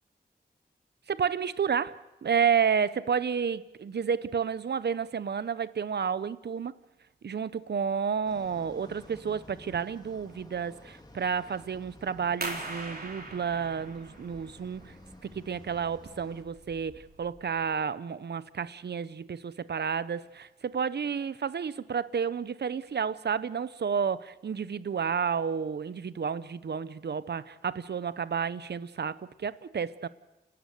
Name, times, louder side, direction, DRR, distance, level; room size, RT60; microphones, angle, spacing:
voice 1, 1.1-6.7 7.2-14.9 15.2-30.1, right 7 dB, 80° right, 0.8 m, -31 dB
sound 1, 8.3-16.4, left 1 dB, 25° left, 3.3 m, -52 dB
sound 2, 12.4-17.7, right 2 dB, 60° right, 4.0 m, -42 dB
29.5 x 12.0 x 7.9 m
cardioid pair, 45°, 17 cm